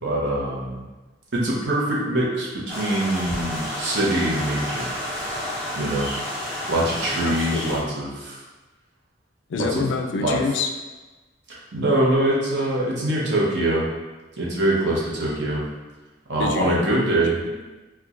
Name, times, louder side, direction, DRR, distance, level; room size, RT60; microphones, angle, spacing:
voice 1, 0.0-0.8 1.3-4.9 5.7-6.1 6.7-8.4 9.7-9.8 10.2-10.4 11.5-13.9 14.4-15.6 16.3-17.4, right 1 dB, 65° right, -4 dB, 0.8 m, -23 dB
sound 1, 2.7-7.8, left 1 dB, 5° left, 0.9 m, -30 dB
voice 2, 7.2-7.9 9.5-10.7 16.4-17.6, left 4 dB, 75° left, 5 dB, 0.3 m, -27 dB
4.3 x 2.2 x 2.5 m, 1.2 s
head